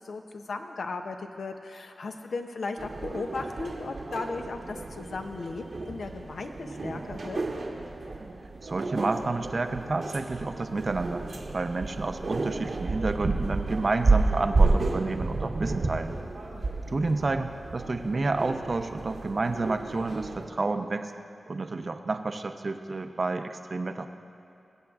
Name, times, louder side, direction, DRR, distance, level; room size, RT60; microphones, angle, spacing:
voice 1, 0.0-7.4 16.5-16.7, left 3 dB, 80° left, 5 dB, 0.6 m, -36 dB
sound 1, 2.8-20.4, right 3 dB, 70° right, 1.1 m, -31 dB
voice 2, 8.6-11.3 11.5-16.1 16.9-21.1 21.5-24.1, right 3 dB, 55° right, 7 dB, 0.6 m, -30 dB
23.0 x 7.6 x 2.4 m, 2.8 s
cardioid pair, 55°, 0 cm